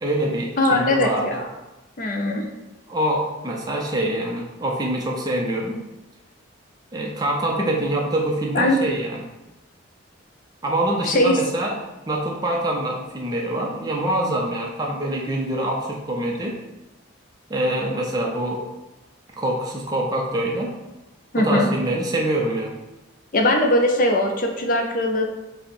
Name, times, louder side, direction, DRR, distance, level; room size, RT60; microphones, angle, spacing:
voice 1, 0.0-1.3 2.9-5.8 6.9-9.2 10.6-11.8 12.1-16.6 17.5-18.7 19.4-20.7 21.3-22.8, right 1 dB, 20° right, -1 dB, 0.4 m, -25 dB
voice 2, 0.6-1.5 2.0-2.5 8.5-8.8 11.0-11.4 21.3-21.7 23.3-25.3, left 1 dB, 45° left, 3 dB, 0.5 m, -20 dB
5.4 x 2.0 x 4.3 m, 1.0 s
head